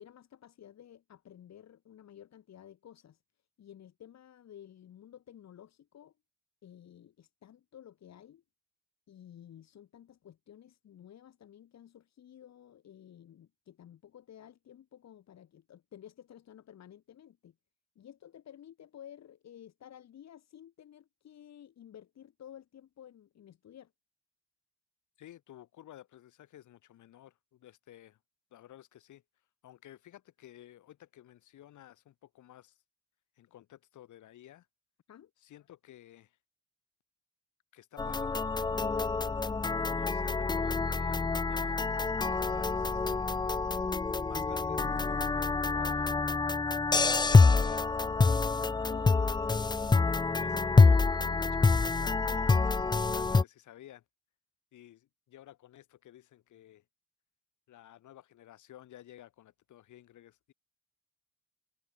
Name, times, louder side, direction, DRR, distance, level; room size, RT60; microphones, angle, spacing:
voice 1, 0.0-3.2 3.6-6.1 6.6-8.4 9.1-17.5 18.0-23.9 35.1-35.3 48.9-49.7, left 10 dB, 60° left, 2.5 m, -53 dB
voice 2, 25.2-28.2 28.5-29.2 29.6-32.8 33.4-34.7 35.4-36.4 37.7-39.1 40.0-43.1 44.3-46.3 47.1-48.7 50.4-54.0 54.7-56.8 57.7-60.5, left 12 dB, 75° left, 5.6 m, -53 dB
sound 1, 38.0-53.4, left 4 dB, 15° left, 0.5 m, -26 dB
cardioid pair, 90°, 30 cm